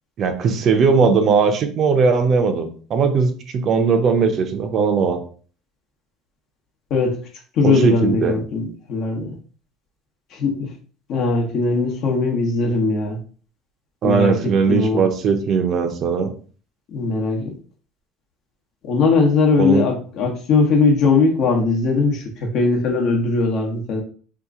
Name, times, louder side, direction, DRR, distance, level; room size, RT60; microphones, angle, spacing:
voice 1, 0.2-5.2 7.6-8.4 14.0-16.3 19.6-19.8, right 5 dB, 45° right, 0.5 m, -18 dB
voice 2, 7.6-9.3 10.3-10.7 11.1-13.2 14.0-15.0 16.9-17.5 18.8-24.0, left 4 dB, 55° left, 0.9 m, -19 dB
2.8 x 2.4 x 3.6 m
supercardioid pair, 115°, 0 cm